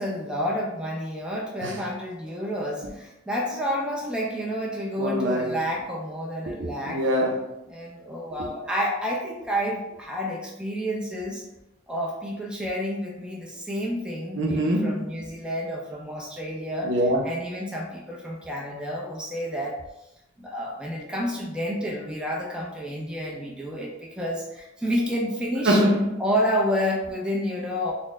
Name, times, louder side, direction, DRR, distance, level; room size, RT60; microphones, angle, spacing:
voice 1, 0.0-7.1 7.7-11.4 11.9-16.9 17.2-19.8 20.4-25.8 26.2-27.9, equal, 5° right, 0.6 m, -29 dB
voice 2, 5.0-5.6 6.5-7.5 8.4-8.5 14.4-15.1 16.8-17.2 25.6-26.1, equal, 80° right, 0.8 m, -24 dB
4.2 x 2.1 x 3.6 m
head